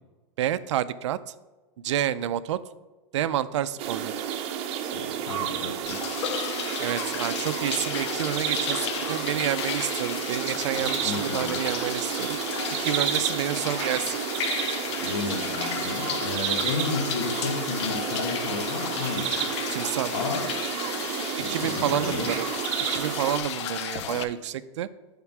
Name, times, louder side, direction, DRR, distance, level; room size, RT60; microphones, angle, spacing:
voice 1, 0.4-1.2 1.8-2.6 3.1-4.1 6.8-12.4 12.8-14.2 19.7-20.1 21.5-22.5 22.9-24.9, right 11 dB, 85° right, 15 dB, 0.4 m, -29 dB
sound 1, 3.8-23.4, right 9 dB, 40° right, 0.8 m, -31 dB
voice 2, 4.9-6.0 10.7-11.6 15.0-19.6 20.1-20.5 21.4-22.3, left 4 dB, 90° left, 4 dB, 1.3 m, -32 dB
sound 2, 5.9-24.2, left 9 dB, 70° left, 0.6 m, -33 dB
7.1 x 3.7 x 6.0 m, 1.2 s
supercardioid pair, 135°, 15 cm